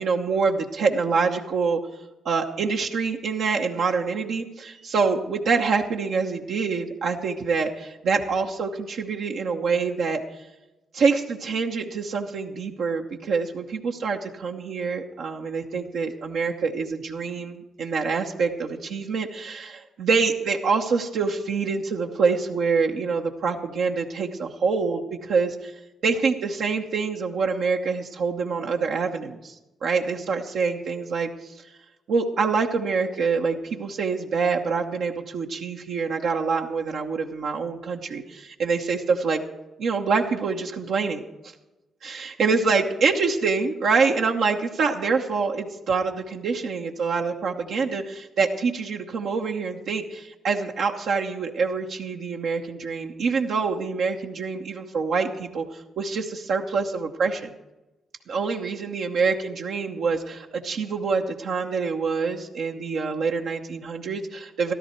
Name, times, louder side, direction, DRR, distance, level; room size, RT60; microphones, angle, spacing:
voice 1, 0.0-1.8 2.2-10.2 10.9-25.7 26.0-31.5 32.1-39.4 39.8-41.2 42.0-57.5 58.3-64.7, right 4 dB, 65° right, 1 dB, 0.9 m, -26 dB
14.0 x 12.5 x 4.5 m, 1.0 s
hypercardioid pair, 40°, 0 cm